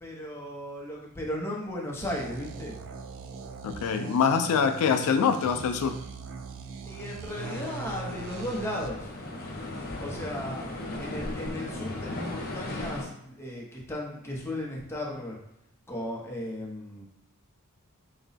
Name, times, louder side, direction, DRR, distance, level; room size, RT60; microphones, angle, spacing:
voice 1, 0.0-2.8 6.9-9.1 10.0-10.7 11.0-15.4 15.9-17.0, left 1 dB, 10° left, -3 dB, 0.7 m, -36 dB
sound 1, 2.0-8.9, right 5 dB, 60° right, 0.4 m, -41 dB
voice 2, 3.6-5.9, left 6 dB, 90° left, 7 dB, 0.4 m, -24 dB
sound 2, 7.3-13.0, left 1 dB, 45° left, 0.7 m, -37 dB
4.0 x 2.2 x 3.9 m, 0.80 s
head